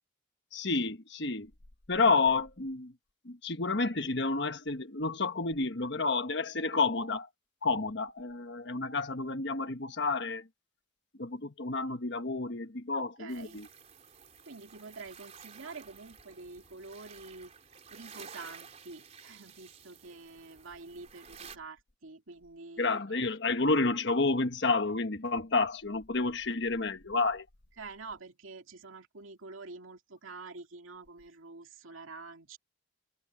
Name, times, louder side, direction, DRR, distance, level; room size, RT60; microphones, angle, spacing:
voice 1, 0.5-1.5 1.9-2.9 3.2-7.3 7.6-10.5 11.2-13.7 22.8-27.5, left 3 dB, 60° left, 1.4 m, -30 dB
voice 2, 12.9-13.6 14.5-23.0 27.8-32.6, right 3 dB, 90° right, 2.3 m, -47 dB
sound 1, 13.3-21.6, right 6 dB, 35° right, 3.7 m, -52 dB
head